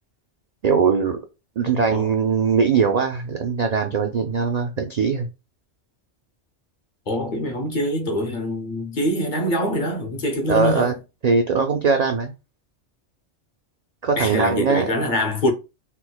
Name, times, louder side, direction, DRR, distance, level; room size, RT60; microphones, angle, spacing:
voice 1, 0.6-1.2 1.6-5.3 10.5-10.9 11.2-12.3 14.0-14.9, right 5 dB, 60° right, 0.4 m, -20 dB
voice 2, 7.1-11.0 14.2-15.5, equal, 45° left, 0.8 m, -24 dB
4.5 x 2.1 x 2.2 m
omnidirectional pair, 1.2 m